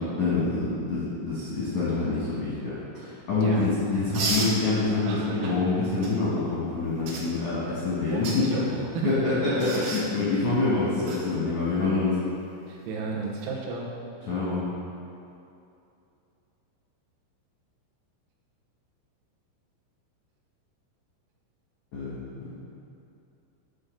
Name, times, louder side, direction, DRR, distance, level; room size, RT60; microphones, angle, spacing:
voice 1, 0.2-8.4 9.0-12.2 14.3-14.6 21.9-22.2, left 3 dB, 85° left, -9 dB, 1.6 m, -26 dB
sound 1, 4.1-4.5 6.0-6.1 7.1-7.2 8.1-8.4 9.6-10.0 11.1-11.2 13.2-13.4, right 3 dB, 70° right, 2.3 m, -30 dB
voice 2, 5.1-5.6 8.1-9.6 12.7-13.9, right 4 dB, 90° right, -2 dB, 3.9 m, -33 dB
10.5 x 3.8 x 6.5 m, 2.7 s
omnidirectional pair, 5.9 m